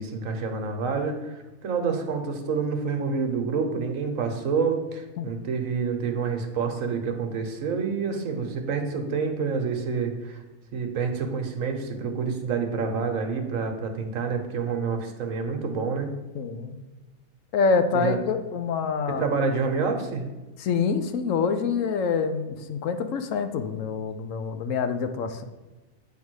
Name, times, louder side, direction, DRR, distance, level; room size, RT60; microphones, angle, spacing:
voice 1, 0.0-10.4 10.7-16.1 17.9-18.2 19.1-20.2, right 5 dB, 70° right, 4 dB, 1.4 m, -28 dB
voice 2, 16.3-16.8 17.5-19.2 20.6-25.4, left 5 dB, 70° left, 8 dB, 1.0 m, -26 dB
8.9 x 3.6 x 6.2 m, 1.2 s
omnidirectional pair, 1.4 m